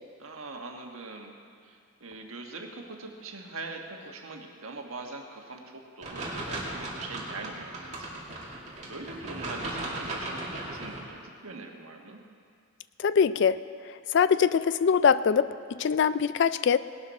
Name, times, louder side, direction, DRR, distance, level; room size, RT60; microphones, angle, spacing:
voice 1, 0.2-1.3 1.6-12.2, right 3 dB, 80° right, 2 dB, 1.5 m, -42 dB
sound 1, 6.0-11.0, right 2 dB, 35° right, 2.3 m, -37 dB
voice 2, 13.0-13.6 14.1-16.8, left 6 dB, 55° left, 15 dB, 0.3 m, -23 dB
18.5 x 12.0 x 4.3 m, 2.3 s
head